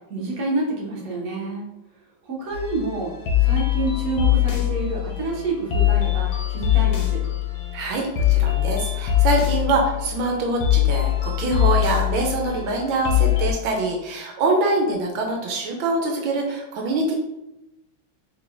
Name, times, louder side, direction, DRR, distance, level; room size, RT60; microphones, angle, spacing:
voice 1, 0.1-1.7 2.2-3.1 3.4-7.2, right 3 dB, 55° right, -2 dB, 1.3 m, -28 dB
sound 1, 2.5-13.5, left 13 dB, 85° left, 1.5 m, -22 dB
voice 2, 7.7-17.1, right 2 dB, 80° right, 1 dB, 1.4 m, -24 dB
4.6 x 3.6 x 2.5 m, 0.92 s
omnidirectional pair, 2.1 m